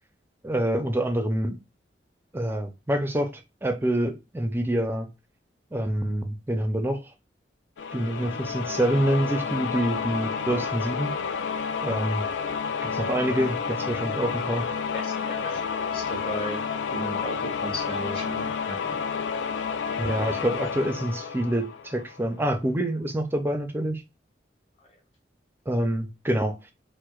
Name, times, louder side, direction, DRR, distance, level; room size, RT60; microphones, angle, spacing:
voice 1, 0.4-1.6 2.3-5.1 5.7-7.0 7.9-11.1 11.8-12.3 12.8-14.6 20.0-24.0 25.7-26.6, right 1 dB, 10° right, 0.4 m, -26 dB
sound 1, 7.8-22.4, left 6 dB, 80° left, 0.3 m, -30 dB
voice 2, 14.9-15.6 15.9-16.6 16.9-19.0, equal, 30° left, 1.3 m, -35 dB
4.6 x 2.1 x 2.3 m
head